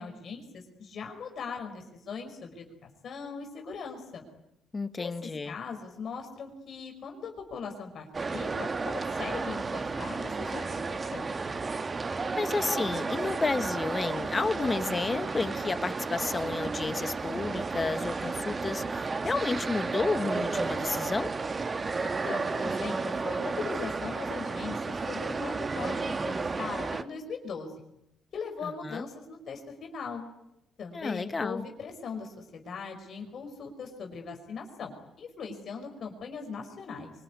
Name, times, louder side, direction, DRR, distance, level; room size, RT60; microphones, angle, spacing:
voice 1, 0.0-4.2 5.0-11.3 22.0-27.7 28.3-30.2 30.8-37.1, left 5 dB, 60° left, 3 dB, 5.1 m, -40 dB
voice 2, 4.7-5.6 12.4-21.3 28.6-29.0 30.9-31.7, left 3 dB, 30° left, 12 dB, 1.3 m, -31 dB
sound 1, 8.1-27.0, right 4 dB, 30° right, 1.3 m, -32 dB
24.5 x 21.0 x 9.7 m, 0.83 s
cardioid pair, 90°, 0 cm